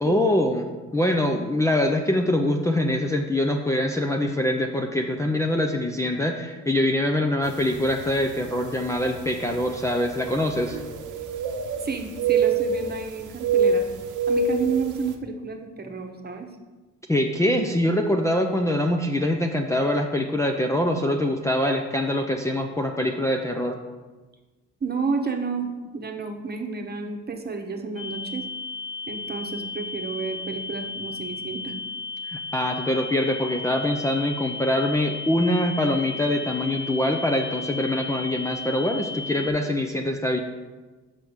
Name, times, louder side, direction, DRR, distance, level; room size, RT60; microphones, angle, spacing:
voice 1, 0.0-10.8 17.1-23.8 32.3-40.4, left 1 dB, 10° left, 1 dB, 0.6 m, -24 dB
sound 1, 7.7-7.9 8.7-8.8 10.6-11.9 12.2-13.0 13.4-14.8, right 4 dB, 80° right, 0.9 m, -24 dB
voice 2, 11.8-13.8 14.3-16.5 24.8-28.5 29.1-31.7, right 5 dB, 30° right, 4 dB, 1.1 m, -30 dB
sound 2, 28.0-39.5, left 3 dB, 45° left, 0.9 m, -35 dB
5.9 x 5.1 x 6.3 m, 1.3 s
cardioid pair, 90°, 30 cm